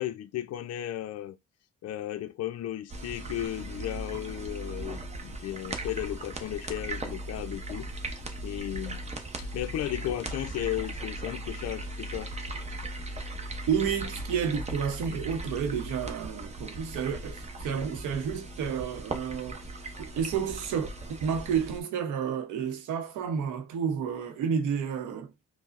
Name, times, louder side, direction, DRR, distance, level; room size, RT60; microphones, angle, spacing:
voice 1, 0.0-1.4 1.8-7.9 8.4-9.0 9.4-12.3, left 13 dB, 55° left, 0.5 m, -35 dB
sound 1, 2.9-21.8, right 1 dB, 20° right, 0.7 m, -38 dB
voice 2, 13.7-19.6 20.0-25.3, right 7 dB, 85° right, 0.8 m, -31 dB
4.9 x 2.1 x 2.5 m
cardioid pair, 90°, 30 cm